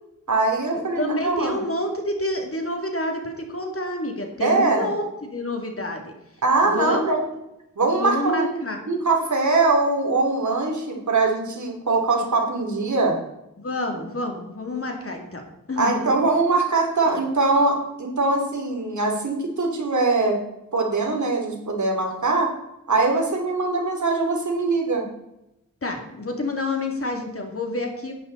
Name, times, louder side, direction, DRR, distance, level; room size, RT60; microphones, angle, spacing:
voice 1, 0.3-1.6 4.4-4.9 6.4-7.2 7.8-8.6 8.9-13.2 15.8-20.4 20.7-22.5 22.9-25.0, right 3 dB, 60° right, 1 dB, 3.1 m, -22 dB
voice 2, 1.0-6.1 6.6-7.2 8.0-8.8 13.6-15.4 15.7-16.1 25.8-28.1, left 1 dB, 40° left, 3 dB, 2.6 m, -28 dB
11.0 x 10.0 x 4.1 m, 0.86 s
wide cardioid pair, 75°, 34 cm